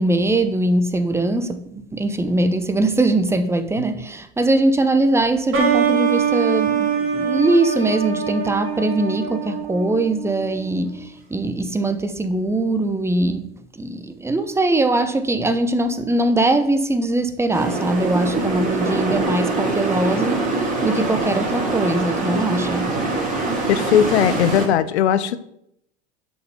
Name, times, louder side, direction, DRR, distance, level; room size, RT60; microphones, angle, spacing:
voice 1, 0.0-23.0, right 2 dB, 10° right, 0.8 m, -21 dB
sound 1, 5.5-11.0, right 7 dB, 40° right, 2.7 m, -23 dB
sound 2, 17.5-24.7, right 3 dB, 25° right, 2.7 m, -23 dB
voice 2, 23.7-25.4, left 9 dB, 90° left, 0.6 m, -18 dB
6.1 x 5.5 x 6.2 m
hypercardioid pair, 95°, 32 cm